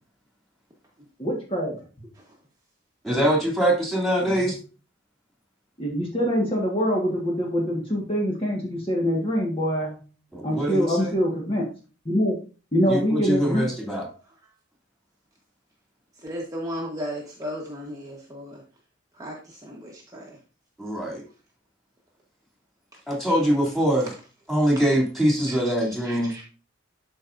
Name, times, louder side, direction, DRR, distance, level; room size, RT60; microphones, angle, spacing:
voice 1, 1.2-1.8 4.2-4.3 5.8-10.0 10.4-11.6 12.0-12.3 12.7-13.6, equal, 30° left, -2 dB, 1.5 m, -24 dB
voice 2, 3.0-4.6 10.3-11.1 12.9-14.0 20.8-21.2 23.1-24.1 24.5-26.3, right 1 dB, ahead, -2 dB, 2.8 m, -23 dB
voice 3, 16.2-18.6 19.1-20.4 25.5-26.4, equal, 20° right, -2 dB, 1.2 m, -36 dB
12.0 x 4.6 x 2.6 m, 0.36 s
head